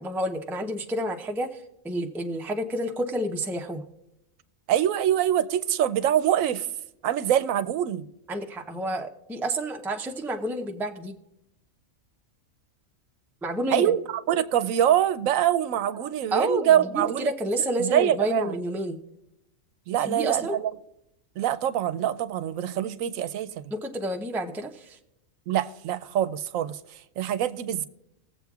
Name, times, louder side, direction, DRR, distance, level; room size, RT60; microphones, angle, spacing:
voice 1, 0.0-1.5 1.8-3.8 8.3-11.1 13.4-13.8 16.3-19.0 20.0-20.6 23.7-25.0, right 1 dB, 5° right, 0.4 m, -29 dB
voice 2, 4.7-6.7 7.0-8.1 13.7-17.3 17.8-18.6 19.9-20.7 21.4-23.6 25.5-27.9, right 10 dB, 80° right, 1.0 m, -24 dB
20.0 x 7.6 x 2.4 m
omnidirectional pair, 1.4 m